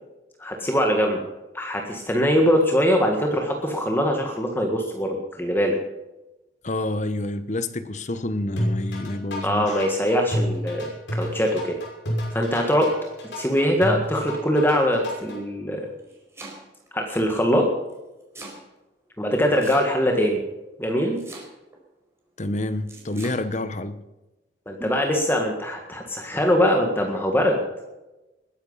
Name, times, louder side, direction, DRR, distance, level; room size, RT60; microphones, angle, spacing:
voice 1, 0.4-1.2 1.5-5.8 9.4-11.7 12.3-12.9 13.4-15.9 16.9-17.7 19.2-20.4 20.8-21.2 24.7-27.6, equal, 10° left, 1.8 m, -22 dB
voice 2, 6.6-9.9 22.4-24.0, left 2 dB, 40° left, 1.1 m, -28 dB
sound 1, 8.6-15.4, equal, 75° left, 5.8 m, -29 dB
Domestic sounds home sounds, 15.8-16.9 17.9-18.6 19.6-20.2 21.2-21.8 22.9-23.4, right 2 dB, 15° right, 4.5 m, -41 dB
20.5 x 10.5 x 5.6 m
head